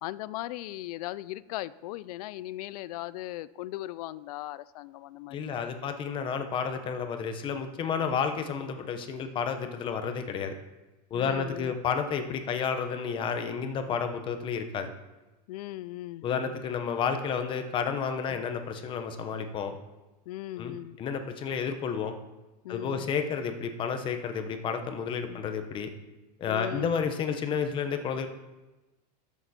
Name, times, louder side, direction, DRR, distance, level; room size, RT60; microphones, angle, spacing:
voice 1, 0.0-5.7 8.1-8.2 11.1-11.8 13.9-14.0 15.5-16.3 18.3-18.4 20.3-21.0 22.6-23.1 25.3-25.4 26.5-27.1, left 16 dB, 65° left, 19 dB, 0.4 m, -38 dB
voice 2, 5.3-10.5 11.1-14.9 16.2-19.8 20.6-22.1 22.7-25.9 26.4-28.3, left 6 dB, 25° left, 7 dB, 0.9 m, -31 dB
13.0 x 7.0 x 4.3 m, 1.1 s
supercardioid pair, 160°, 21 cm